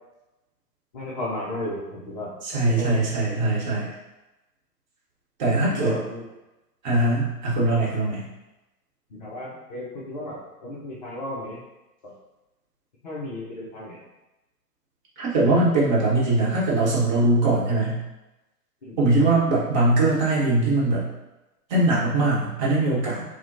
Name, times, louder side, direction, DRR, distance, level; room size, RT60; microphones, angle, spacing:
voice 1, 0.9-3.0 5.5-6.2 7.0-7.1 9.1-11.6 12.0-12.1 13.0-14.0 18.8-19.0, left 1 dB, 30° left, -6 dB, 0.5 m, -34 dB
voice 2, 2.4-3.9 5.4-6.0 6.8-8.2 15.2-18.0 19.0-21.1 21.7-23.2, right 2 dB, 30° right, -6 dB, 1.0 m, -21 dB
5.6 x 2.2 x 2.5 m, 1.0 s
figure-of-eight pair, 125°, 48 cm